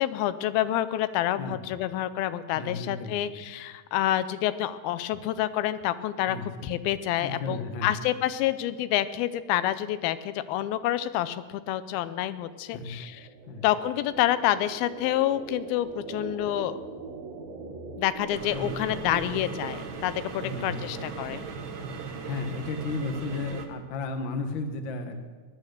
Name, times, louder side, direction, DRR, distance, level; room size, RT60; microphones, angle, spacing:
voice 1, 0.0-6.4 6.6-13.3 13.6-16.8 18.0-21.4, left 13 dB, 90° left, 14 dB, 2.6 m, -28 dB
voice 2, 2.5-3.2 6.3-6.7 7.2-7.9 12.7-12.9 13.5-13.6 18.5-18.7 20.4-20.9 22.3-25.2, left 3 dB, 55° left, 6 dB, 1.3 m, -34 dB
sound 1, 11.5-20.4, right 4 dB, 60° right, 2.3 m, -42 dB
sound 2, 18.3-23.7, right 5 dB, 80° right, 1.1 m, -38 dB
19.5 x 10.5 x 6.6 m, 1.4 s
omnidirectional pair, 4.2 m